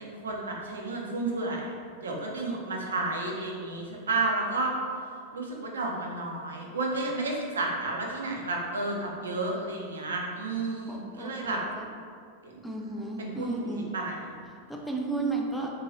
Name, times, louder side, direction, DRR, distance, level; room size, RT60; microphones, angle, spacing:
voice 1, 0.0-1.7 2.0-4.7 5.3-11.6 12.4-12.6 13.2-14.2, right 2 dB, 70° right, -1 dB, 0.4 m, -32 dB
voice 2, 10.9-11.9 12.6-13.9 14.7-15.7, right 3 dB, ahead, -1 dB, 0.3 m, -33 dB
2.7 x 2.2 x 2.9 m, 2.2 s
figure-of-eight pair, 90°, 0 cm